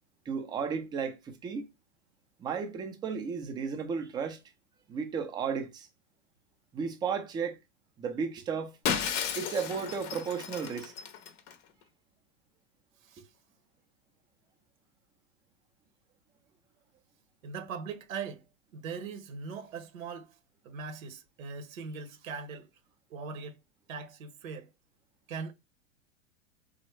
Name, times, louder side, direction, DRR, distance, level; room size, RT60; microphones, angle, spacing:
voice 1, 0.3-1.7 2.4-4.4 4.9-5.9 6.7-7.6 8.0-8.7 9.4-10.9, right 6 dB, 10° right, 0.3 m, -34 dB
Shatter, 8.9-11.5, left 8 dB, 40° left, 0.6 m, -34 dB
voice 2, 17.4-18.5 18.7-20.4 20.6-22.7 23.1-23.6 23.9-24.7 25.3-25.5, right 5 dB, 80° right, 0.8 m, -40 dB
3.6 x 2.0 x 3.0 m
hypercardioid pair, 115°, 40 cm